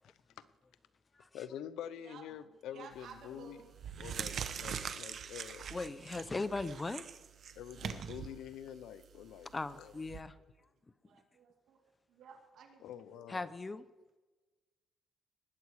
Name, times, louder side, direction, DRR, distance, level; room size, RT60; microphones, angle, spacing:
voice 1, 0.0-0.5 1.3-3.6 4.0-5.7 7.6-9.9 12.8-13.5, left 10 dB, 85° left, 0.6 m, -47 dB
voice 2, 2.7-3.7 7.7-7.9 8.6-9.4 10.1-10.4 11.0-11.8 12.1-13.3, right 6 dB, 75° right, 2.6 m, -56 dB
sound 1, 2.9-3.2 3.7-10.2, right 7 dB, 60° right, 1.0 m, -43 dB
voice 3, 5.7-7.0 7.9-8.0 9.5-10.4 13.3-13.8, left 3 dB, 25° left, 0.7 m, -38 dB
20.0 x 8.3 x 4.9 m
cardioid pair, 90°, 0 cm